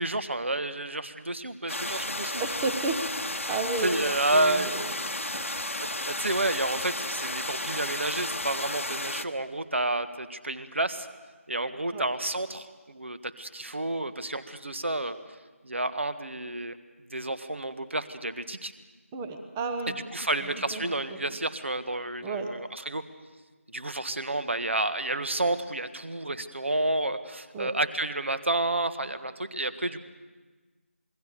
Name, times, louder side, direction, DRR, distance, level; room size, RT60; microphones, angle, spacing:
voice 1, 0.0-2.4 3.8-4.8 6.0-11.1 11.5-15.2 15.6-16.8 17.1-18.7 20.1-23.0 23.7-30.1, right 2 dB, 55° right, 12 dB, 1.5 m, -30 dB
sound 1, 1.7-9.3, left 1 dB, 70° left, 1.2 m, -33 dB
voice 2, 2.4-4.9 5.3-5.4 11.9-12.1 19.1-20.0 20.4-21.2 22.2-22.6 27.5-27.7, right 3 dB, 5° right, 6 dB, 0.8 m, -33 dB
26.5 x 22.0 x 6.8 m, 1.3 s
figure-of-eight pair, 165°, 8 cm